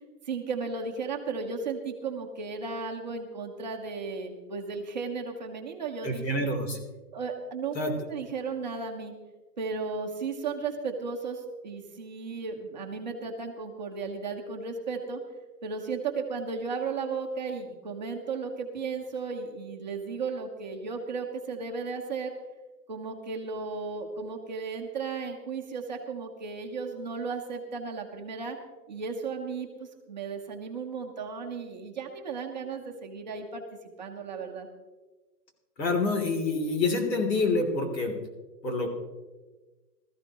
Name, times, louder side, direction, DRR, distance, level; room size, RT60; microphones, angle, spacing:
voice 1, 0.3-6.4 7.1-7.7 8.1-9.1 9.6-15.2 15.6-22.3 22.9-28.6 28.9-33.6 34.0-34.7, right 4 dB, 25° right, 2 dB, 0.9 m, -35 dB
voice 2, 6.0-6.8 7.7-7.9 35.8-38.1 38.6-38.9, left 3 dB, 85° left, 3 dB, 3.3 m, -27 dB
18.0 x 14.0 x 3.0 m, 1.2 s
hypercardioid pair, 180°, 49 cm